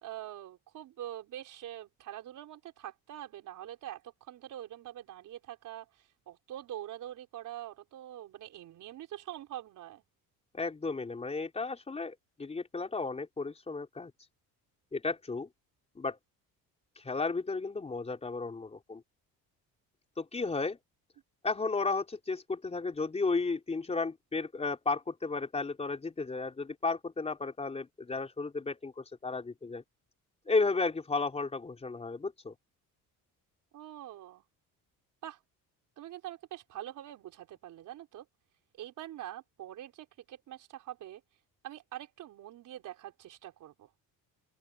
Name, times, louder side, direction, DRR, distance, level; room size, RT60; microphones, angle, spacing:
voice 1, 0.0-5.9 6.3-10.0 33.7-34.4 35.2-35.4 36.0-38.2 38.8-41.2 41.6-43.9, right 12 dB, 60° right, 4.5 m, -44 dB
voice 2, 10.5-14.1 14.9-15.5 16.0-16.2 17.0-19.0 20.2-20.8 21.4-29.8 30.5-32.5, left 3 dB, 20° left, 3.8 m, -33 dB
open air
cardioid pair, 150°, 35 cm